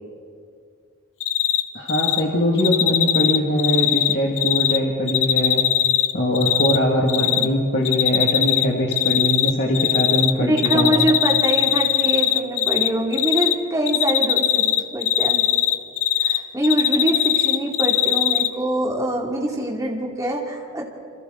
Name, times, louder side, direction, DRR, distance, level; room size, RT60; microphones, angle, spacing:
Cricket, 1.2-1.6 1.9-2.2 2.6-4.8 5.1-6.8 7.1-7.5 7.9-8.7 8.9-10.3 10.6-12.9 13.1-13.5 13.9-16.4 16.6-18.5, left 12 dB, 70° left, 1.1 m, -19 dB
voice 1, 1.7-5.6 6.1-10.9, equal, 50° left, -2 dB, 2.1 m, -22 dB
voice 2, 7.2-7.5 10.4-15.4 16.2-20.8, right 1 dB, 15° right, -1 dB, 2.6 m, -24 dB
27.5 x 27.0 x 3.9 m, 2.3 s
head